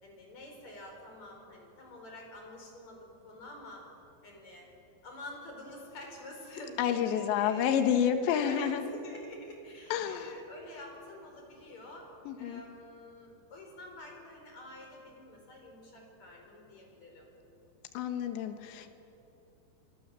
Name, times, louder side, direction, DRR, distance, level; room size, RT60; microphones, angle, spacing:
voice 1, 0.0-3.9 4.2-4.7 5.0-12.1 12.4-17.3, left 1 dB, 40° left, 1 dB, 5.7 m, -47 dB
voice 2, 6.8-8.9 9.9-10.4 12.3-12.6 18.0-18.9, left 8 dB, 75° left, 7 dB, 3.6 m, -29 dB
26.0 x 25.5 x 7.7 m, 2.9 s
omnidirectional pair, 5.3 m